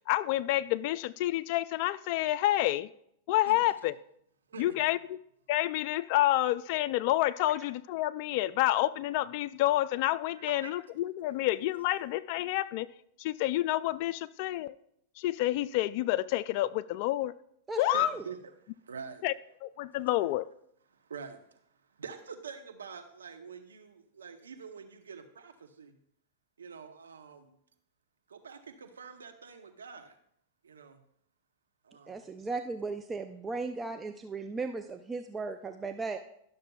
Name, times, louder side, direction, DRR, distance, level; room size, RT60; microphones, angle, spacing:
voice 1, 0.0-2.9 3.3-3.9 4.6-5.2 5.5-12.9 13.2-14.8 15.2-17.3 17.8-18.1 19.2-19.3 19.6-20.5, left 15 dB, 55° left, 0.3 m, -29 dB
voice 2, 10.4-10.7 17.9-18.4 18.8-19.2 20.9-21.6 21.9-26.0 26.6-27.6 28.3-30.1 30.6-31.0 31.8-32.3, right 6 dB, 85° right, 0.9 m, -46 dB
voice 3, 17.7-18.2 32.1-36.2, right 3 dB, 20° right, 0.5 m, -36 dB
12.0 x 6.6 x 2.3 m
hypercardioid pair, 100°, 0 cm